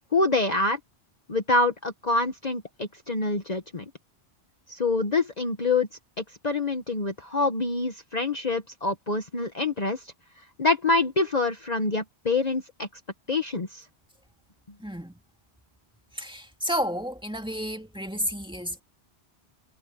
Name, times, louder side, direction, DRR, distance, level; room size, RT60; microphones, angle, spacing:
voice 1, 0.1-0.8 1.3-3.8 4.7-5.9 6.4-10.0 10.6-12.9 13.3-13.8, left 3 dB, 40° left, 1.3 m, -26 dB
voice 2, 14.8-15.1 16.1-18.8, equal, 5° right, 2.2 m, -31 dB
omnidirectional pair, 1.2 m